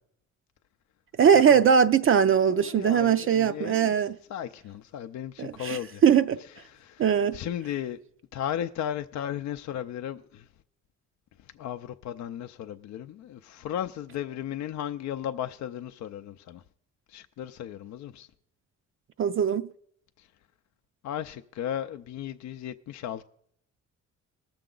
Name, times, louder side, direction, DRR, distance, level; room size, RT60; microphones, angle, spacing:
voice 1, 1.2-4.2 5.4-6.4 7.0-7.4 19.2-19.6, right 7 dB, 45° right, 0.5 m, -21 dB
voice 2, 2.5-3.9 4.3-6.0 6.7-7.0 7.3-8.0 8.3-10.4 11.6-16.6 17.1-18.3 21.0-23.2, left 10 dB, 65° left, 0.5 m, -35 dB
19.0 x 6.8 x 3.8 m
cardioid pair, 90°, 30 cm